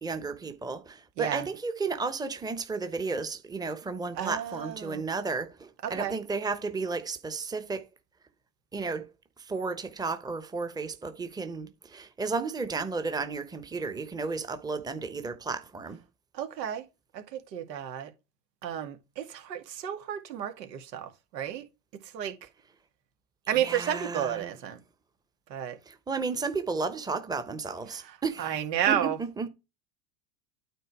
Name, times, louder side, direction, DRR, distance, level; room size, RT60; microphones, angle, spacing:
voice 1, 0.0-7.9 8.7-9.1 9.4-16.0 23.5-24.4 25.9-28.6 28.9-29.5, right 4 dB, 10° right, 0.9 m, -33 dB
voice 2, 4.2-5.1 5.8-6.2 16.3-16.8 17.1-18.1 18.6-21.7 22.0-22.3 23.5-24.8 25.5-25.8 27.9-29.2, right 10 dB, 85° right, 2.2 m, -32 dB
9.2 x 3.9 x 4.8 m
supercardioid pair, 110°, 48 cm